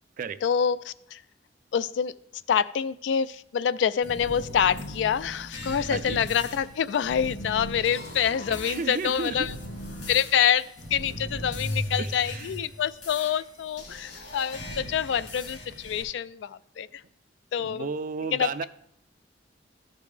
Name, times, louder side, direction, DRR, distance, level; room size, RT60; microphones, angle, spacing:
voice 1, 0.4-1.2 1.7-2.1 2.5-9.6 10.1-17.0 17.5-17.9 18.3-18.6, left 8 dB, 90° left, 16 dB, 0.3 m, -26 dB
sound 1, 4.0-16.0, left 1 dB, 70° left, 2.5 m, -38 dB
voice 2, 5.9-6.2 8.5-9.5 12.0-12.5 17.6-18.6, right 5 dB, 45° right, 13 dB, 0.4 m, -33 dB
13.5 x 5.2 x 3.3 m, 0.73 s
head